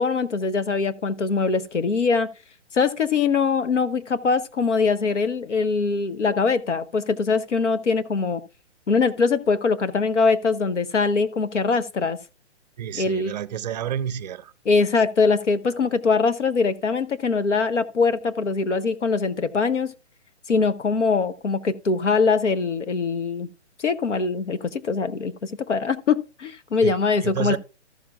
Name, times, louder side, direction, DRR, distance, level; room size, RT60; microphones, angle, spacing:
voice 1, 0.0-2.3 2.7-8.4 8.9-12.2 13.0-13.3 14.6-19.9 20.5-23.5 23.8-27.6, left 4 dB, 90° left, 1.1 m, -22 dB
voice 2, 12.8-14.5 26.8-27.6, right 9 dB, 35° right, 0.6 m, -30 dB
14.0 x 7.1 x 2.4 m
hypercardioid pair, 145°, 35 cm